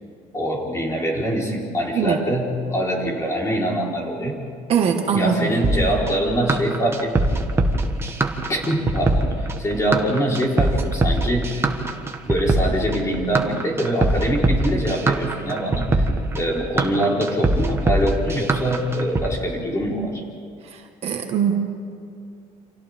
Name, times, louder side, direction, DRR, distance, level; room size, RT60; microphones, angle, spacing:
voice 1, 0.3-4.4 5.1-7.1 8.5-11.5 12.3-16.0 16.3-20.2, equal, 20° left, -3 dB, 4.3 m, -24 dB
voice 2, 4.7-5.5 20.6-21.7, right 7 dB, 50° right, 3 dB, 1.8 m, -22 dB
sound 1, 5.6-19.3, right 2 dB, 20° right, 1.5 m, -22 dB
29.5 x 27.5 x 3.7 m, 2.4 s
cardioid pair, 145°, 14 cm